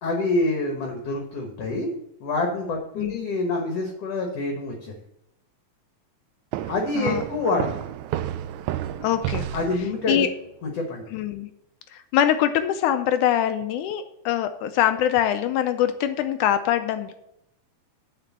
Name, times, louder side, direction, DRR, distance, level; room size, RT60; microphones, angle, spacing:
voice 1, 0.0-1.9 2.2-4.9 6.7-7.7 9.5-10.3 10.6-11.1, left 2 dB, 60° left, 2 dB, 2.0 m, -26 dB
sound 1, 6.5-10.2, right 12 dB, 80° right, 1.7 m, -31 dB
voice 2, 9.0-9.5 10.1-10.3 11.1-11.5 11.9-17.1, left 10 dB, 80° left, 9 dB, 1.9 m, -23 dB
7.8 x 5.0 x 7.1 m, 0.82 s
omnidirectional pair, 3.8 m